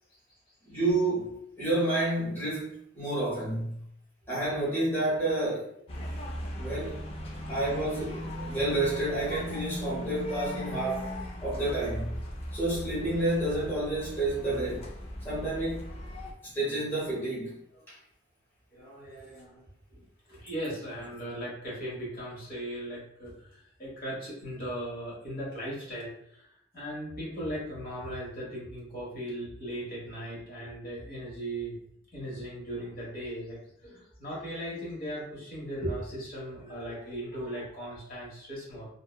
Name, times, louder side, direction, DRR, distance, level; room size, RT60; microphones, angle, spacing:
voice 1, 0.6-3.8 4.3-5.7 6.6-7.0 7.5-11.1 11.4-12.1 12.5-14.9 15.2-15.8 16.4-17.6 17.9-18.0, right 2 dB, 15° left, -9 dB, 0.9 m, -30 dB
sound 1, 5.9-16.3, equal, 35° left, 0.4 m, -38 dB
voice 2, 18.7-31.8 32.1-38.9, right 1 dB, 50° left, -6 dB, 1.1 m, -38 dB
2.8 x 2.0 x 2.2 m, 0.72 s
head